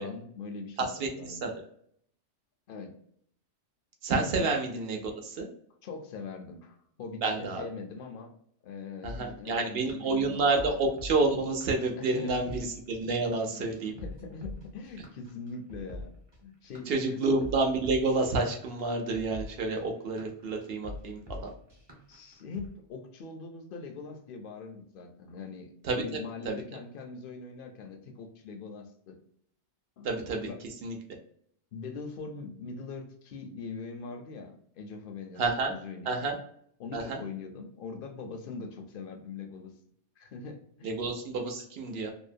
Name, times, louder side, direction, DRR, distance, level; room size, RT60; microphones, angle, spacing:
voice 1, 0.0-1.5 2.7-3.0 4.4-4.5 5.8-8.4 8.6-10.8 12.0-12.6 13.5-13.7 13.9-16.1 16.4-17.4 22.1-29.2 30.0-30.1 30.4-30.6 31.7-35.4 35.7-36.3 36.8-39.7 40.2-40.9, left 4 dB, 60° left, 4 dB, 0.7 m, -42 dB
voice 2, 0.8-1.5 4.0-5.5 7.2-7.7 9.0-13.9 16.9-21.4 25.8-26.0 26.4-26.6 30.0-30.5 30.8-31.0 35.4-35.7 36.1-36.4 36.9-37.2 40.8-42.1, right 3 dB, 65° right, 2 dB, 0.8 m, -29 dB
sound 1, 9.0-22.7, left 2 dB, 30° right, 0.6 m, -44 dB
2.7 x 2.0 x 2.5 m, 0.66 s
omnidirectional pair, 1.2 m